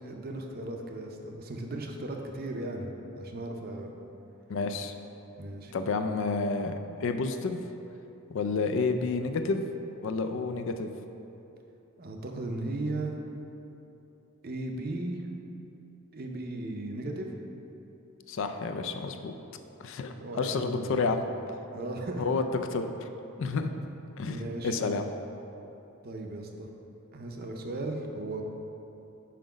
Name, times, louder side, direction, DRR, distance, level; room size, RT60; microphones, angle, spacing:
voice 1, 0.0-2.9 3.1-3.9 5.4-5.7 12.0-13.1 14.4-15.2 16.1-17.3 20.2-21.5 21.7-22.3 24.3-24.7 26.0-26.7 27.1-28.4, right 2 dB, 45° right, 2 dB, 0.6 m, -36 dB
voice 2, 4.5-4.9 5.7-7.6 8.3-9.7 10.0-10.9 18.3-19.3 19.8-21.2 22.2-22.4 22.7-22.9 23.4-23.7 24.2-24.4 24.6-25.1, left 4 dB, 55° left, 7 dB, 0.4 m, -30 dB
5.9 x 5.1 x 5.0 m, 3.0 s
head